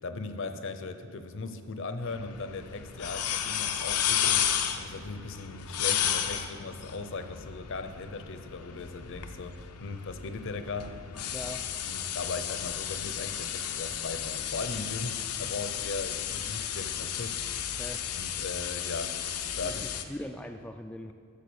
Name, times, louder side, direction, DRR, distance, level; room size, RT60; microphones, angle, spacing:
voice 1, 0.0-11.1 11.8-17.7 18.2-19.9, left 3 dB, 60° left, 9 dB, 0.7 m, -38 dB
sound 1, 2.0-20.0, left 9 dB, 90° left, 0.7 m, -33 dB
voice 2, 11.3-11.6 17.8-18.0 19.6-21.1, left 1 dB, 5° left, 5 dB, 0.3 m, -41 dB
12.0 x 6.8 x 7.0 m, 2.3 s
head